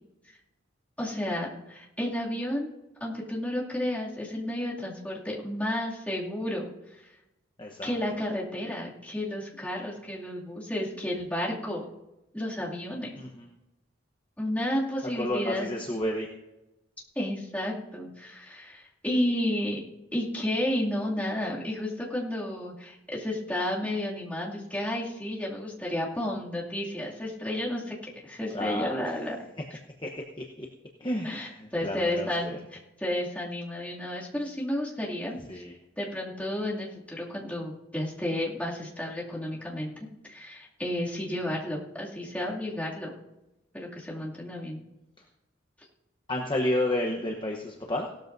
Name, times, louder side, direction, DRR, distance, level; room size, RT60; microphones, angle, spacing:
voice 1, 1.0-2.7 3.0-6.7 7.8-11.9 12.3-13.1 14.4-15.7 17.2-19.8 20.1-27.9 28.2-29.5 31.2-35.6 36.0-43.1 43.7-44.8, left 1 dB, 10° left, -6 dB, 2.5 m, -32 dB
voice 2, 7.6-7.9 13.1-13.5 15.2-16.3 28.5-29.2 30.0-30.1 30.6-30.7 31.0-32.6 35.5-35.8 46.3-48.1, left 1 dB, 25° left, 0 dB, 1.0 m, -31 dB
17.5 x 13.0 x 2.7 m, 0.96 s
head